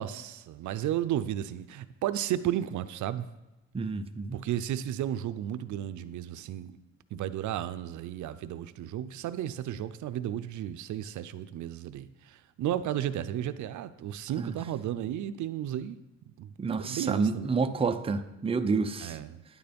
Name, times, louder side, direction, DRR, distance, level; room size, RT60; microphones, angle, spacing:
voice 1, 0.0-3.3 4.3-6.8 7.1-16.0 16.4-16.5 16.8-17.6 19.0-19.4, right 11 dB, 75° right, 13 dB, 0.6 m, -33 dB
voice 2, 3.7-4.4 14.4-14.5 16.6-19.2, right 4 dB, 20° right, 8 dB, 0.6 m, -29 dB
9.8 x 9.3 x 5.2 m, 1.0 s
cardioid pair, 145°, 30 cm